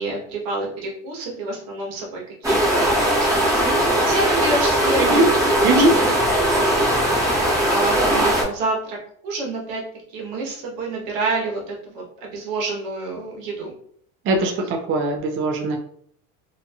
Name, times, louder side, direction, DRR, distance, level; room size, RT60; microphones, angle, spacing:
voice 1, 0.0-3.5 3.9-5.2 5.7-6.7 7.6-9.0 9.2-9.8 10.1-13.7, right 2 dB, 85° right, -1 dB, 1.1 m, -28 dB
sound 1, 2.4-8.4, right 1 dB, 10° right, 0.8 m, -19 dB
voice 2, 14.3-15.8, right 1 dB, 35° right, 3 dB, 0.4 m, -20 dB
2.7 x 2.6 x 2.3 m, 0.63 s
supercardioid pair, 110°, 39 cm